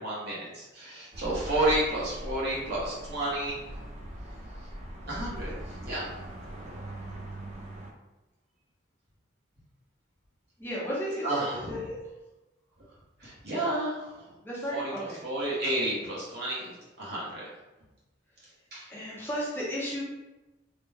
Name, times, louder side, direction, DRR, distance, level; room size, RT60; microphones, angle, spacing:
voice 1, 0.0-3.6 5.1-5.6 5.8-6.1 11.2-11.8 13.2-14.1 14.7-14.9 15.2-17.5 18.7-18.9, right 1 dB, 55° right, -7 dB, 1.2 m, -31 dB
sound 1, 1.1-7.9, right 1 dB, 35° right, 0.4 m, -41 dB
voice 2, 10.6-12.0 14.4-15.2 18.9-20.0, equal, 10° left, -7 dB, 0.6 m, -34 dB
3.0 x 2.2 x 3.4 m, 1.0 s
head